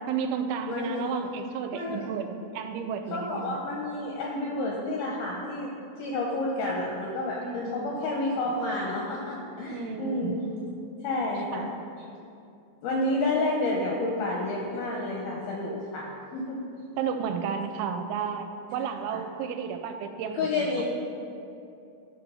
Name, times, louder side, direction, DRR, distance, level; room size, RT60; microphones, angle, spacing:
voice 1, 0.1-3.7 7.4-8.0 9.7-10.4 11.5-11.7 17.0-20.8, right 7 dB, 85° right, 7 dB, 2.8 m, -33 dB
voice 2, 0.7-1.1 1.7-2.1 3.1-10.4 11.0-11.7 12.8-16.6 19.1-19.2 20.3-20.8, left 2 dB, 80° left, -2 dB, 2.2 m, -30 dB
12.0 x 4.5 x 5.4 m, 2.6 s
omnidirectional pair, 5.3 m